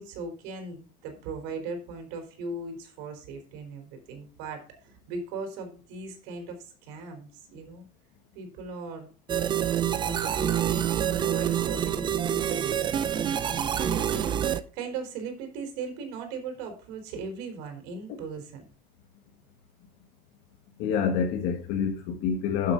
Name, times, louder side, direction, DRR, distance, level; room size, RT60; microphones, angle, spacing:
voice 1, 0.0-7.9 8.3-9.1 9.6-18.7, right 4 dB, 90° right, 4.3 m, -39 dB
sound 1, 9.3-14.6, right 9 dB, 25° right, 0.6 m, -27 dB
voice 2, 20.8-22.7, left 6 dB, 65° left, 1.7 m, -27 dB
12.0 x 7.5 x 3.9 m
cardioid pair, 170°, 19 cm